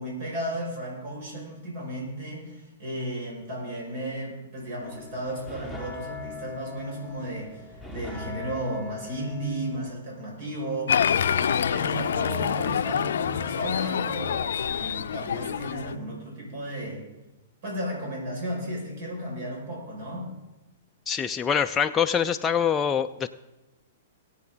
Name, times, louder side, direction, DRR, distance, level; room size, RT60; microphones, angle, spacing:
voice 1, 0.0-17.0 17.6-20.3, right 1 dB, 55° right, -2 dB, 5.6 m, -34 dB
sound 1, 4.8-9.9, left 5 dB, 5° right, 1.6 m, -41 dB
Applause, 10.9-15.9, left 8 dB, 70° left, 0.5 m, -26 dB
voice 2, 21.1-23.3, left 7 dB, 20° left, 6 dB, 0.4 m, -24 dB
21.0 x 8.5 x 3.9 m, 1.0 s
hypercardioid pair, 115°, 0 cm